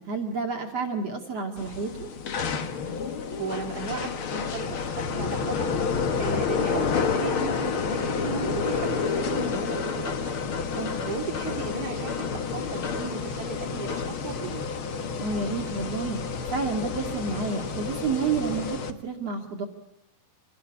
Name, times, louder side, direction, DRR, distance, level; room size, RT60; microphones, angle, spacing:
voice 1, 0.0-2.1 10.8-11.0 15.2-16.2 16.5-19.6, right 4 dB, 45° right, 2 dB, 2.8 m, -30 dB
sound 1, 1.6-18.9, left 5 dB, 80° left, 1.2 m, -29 dB
voice 2, 3.4-5.7 6.2-10.4 11.0-14.7, right 5 dB, 30° right, 2 dB, 2.4 m, -35 dB
27.0 x 18.5 x 9.9 m, 0.89 s
omnidirectional pair, 4.8 m